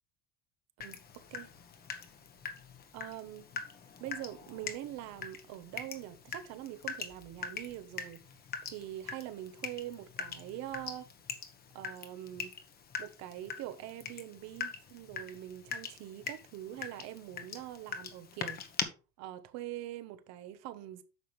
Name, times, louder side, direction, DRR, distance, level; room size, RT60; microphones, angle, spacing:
Water tap faucet / Drip, 0.8-18.8, left 6 dB, 30° left, 1.2 m, -43 dB
voice 1, 0.8-1.5 2.9-3.5 4.0-8.2 8.6-11.1 11.7-12.5 13.0-18.6 19.2-21.0, right 13 dB, 60° right, 1.2 m, -44 dB
9.4 x 6.1 x 3.3 m
cardioid pair, 135°, 30 cm